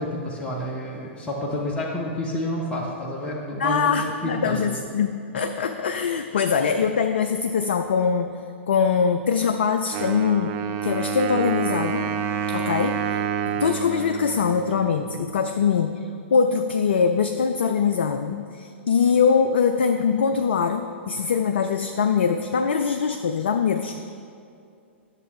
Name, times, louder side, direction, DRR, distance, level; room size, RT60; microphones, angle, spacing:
voice 1, 0.0-4.8, equal, 15° left, -3 dB, 0.9 m, -29 dB
voice 2, 3.6-8.4 8.7-12.1 12.5-24.0, left 6 dB, 60° left, 7 dB, 0.3 m, -23 dB
Wind instrument woodwind instrument, 9.9-15.5, right 8 dB, 30° right, 0.5 m, -28 dB
10.5 x 6.7 x 3.2 m, 2.5 s
figure-of-eight pair, 105°, 7 cm